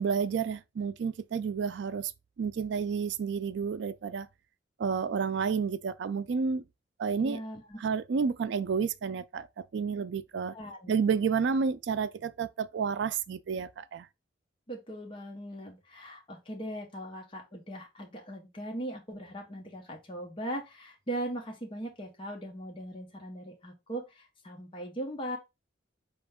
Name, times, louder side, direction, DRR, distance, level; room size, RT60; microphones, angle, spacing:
voice 1, 0.0-2.1 2.4-4.3 4.8-6.6 7.0-7.4 7.8-10.5 10.9-14.1, right 6 dB, 70° right, 0.4 m, -30 dB
voice 2, 7.2-7.8 10.5-10.9 14.7-25.4, right 1 dB, 30° left, 0.9 m, -39 dB
4.4 x 3.0 x 3.5 m
head